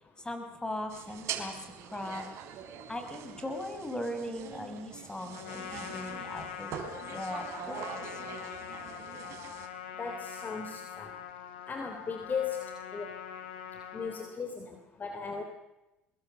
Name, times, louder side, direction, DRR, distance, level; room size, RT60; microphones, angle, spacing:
voice 1, 0.2-2.3 2.9-6.7 7.1-8.2, left 1 dB, 15° left, 6 dB, 5.6 m, -39 dB
sound 1, 0.9-9.7, right 8 dB, 60° right, 3.8 m, -43 dB
Trumpet, 5.3-14.3, left 8 dB, 85° left, 3.2 m, -43 dB
voice 2, 10.0-11.1 11.7-12.7 12.9-13.1 13.9-15.4, left 5 dB, 30° left, 5 dB, 3.3 m, -37 dB
24.0 x 21.0 x 7.0 m, 0.98 s
hypercardioid pair, 75°, 6 cm